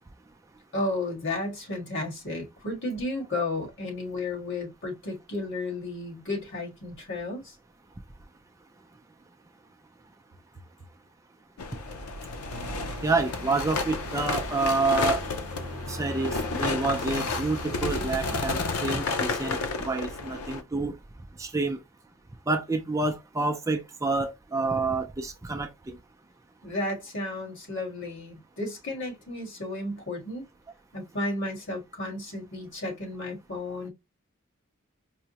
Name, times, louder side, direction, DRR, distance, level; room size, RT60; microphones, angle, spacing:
voice 1, 0.7-7.5 26.6-30.4 30.9-33.9, left 2 dB, 55° left, 1.7 m, -33 dB
sound 1, 11.6-20.6, left 4 dB, 90° left, 0.5 m, -31 dB
sound 2, 12.5-18.7, right 2 dB, 85° right, 0.7 m, -41 dB
voice 2, 13.0-15.2 15.9-19.6 19.8-20.9 21.4-21.8 22.5-26.0, right 3 dB, 15° right, 0.4 m, -28 dB
4.8 x 2.1 x 2.8 m
head